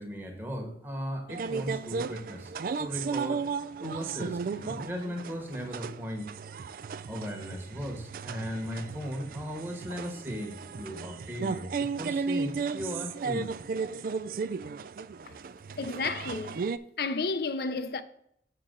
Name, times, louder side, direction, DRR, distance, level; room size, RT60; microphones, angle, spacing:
voice 1, 0.0-2.5 2.8-3.5 3.8-6.3 7.1-13.5, equal, 10° right, 1.3 m, -37 dB
sound 1, 1.3-16.8, right 5 dB, 50° right, 0.3 m, -35 dB
voice 2, 15.8-16.6 17.0-18.0, left 3 dB, 60° left, 0.6 m, -31 dB
7.3 x 6.7 x 3.8 m
head